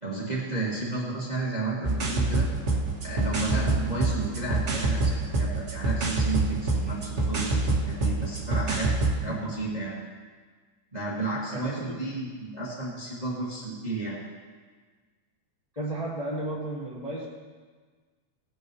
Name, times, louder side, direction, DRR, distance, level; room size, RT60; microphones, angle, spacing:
voice 1, 0.0-2.5 3.0-8.9 9.2-9.9 10.9-14.2, right 3 dB, 15° right, -6 dB, 1.6 m, -32 dB
sound 1, 1.8-9.2, right 2 dB, 50° right, 0.8 m, -26 dB
voice 2, 11.5-12.0 15.7-17.3, right 1 dB, 15° left, -7 dB, 1.4 m, -33 dB
17.5 x 8.9 x 3.1 m, 1.5 s
omnidirectional pair, 3.4 m